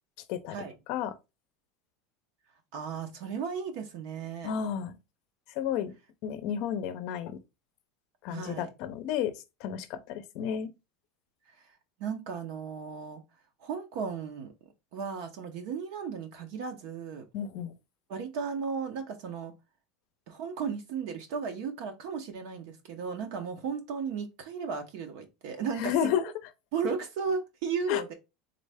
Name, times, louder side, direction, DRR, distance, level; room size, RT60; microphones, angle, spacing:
voice 1, 2.7-4.5 8.3-8.7 11.5-11.7 12.0-13.2 13.6-14.5 14.9-17.2 18.1-19.5 20.3-26.2 26.7-28.1, right 6 dB, 55° right, 0.7 m, -35 dB
voice 2, 4.4-5.0 5.6-5.9 6.2-7.4 8.2-9.3 9.6-10.7 17.3-17.7 25.8-26.2 27.9-28.1, left 9 dB, 50° left, 0.6 m, -31 dB
3.9 x 3.2 x 3.4 m
supercardioid pair, 170°, 0 cm